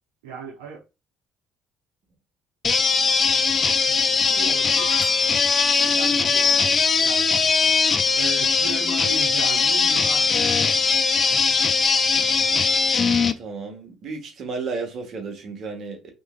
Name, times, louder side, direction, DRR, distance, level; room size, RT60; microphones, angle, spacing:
voice 1, 0.2-0.8 4.2-4.9 5.8-6.7 7.0-7.3 8.1-10.6 12.1-12.6, right 5 dB, 85° right, 0.7 m, -37 dB
sound 1, 2.6-13.3, left 5 dB, 40° left, 0.4 m, -20 dB
sound 2, 4.7-5.7, equal, 25° right, 1.1 m, -37 dB
voice 2, 13.4-16.1, right 4 dB, 55° right, 1.1 m, -33 dB
3.0 x 2.5 x 2.4 m
hypercardioid pair, 55°, 0 cm